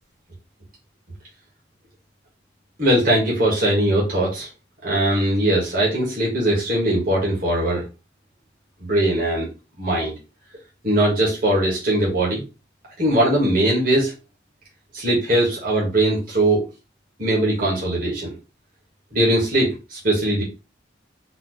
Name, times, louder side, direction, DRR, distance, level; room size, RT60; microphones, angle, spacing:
voice 1, 2.8-4.5 4.8-7.8 8.8-9.5 9.8-10.1 10.8-12.4 13.0-14.1 14.9-16.6 17.2-18.3 19.1-20.4, right 1 dB, 50° right, -4 dB, 1.9 m, -20 dB
4.2 x 3.3 x 3.2 m, 0.28 s
head